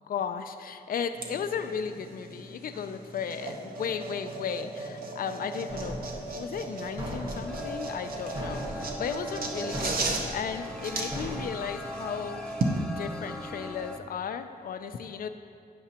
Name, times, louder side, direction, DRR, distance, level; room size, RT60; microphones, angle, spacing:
voice 1, 0.0-6.0 6.4-12.5 13.0-15.3, left 7 dB, 60° left, 10 dB, 0.4 m, -35 dB
sound 1, 1.1-12.8, right 2 dB, 60° right, 0.8 m, -36 dB
sound 2, 5.7-11.5, equal, 35° right, 1.2 m, -39 dB
sound 3, 7.5-14.0, left 1 dB, 5° left, 0.6 m, -40 dB
9.2 x 5.8 x 2.9 m, 2.4 s
wide cardioid pair, 115°, 17 cm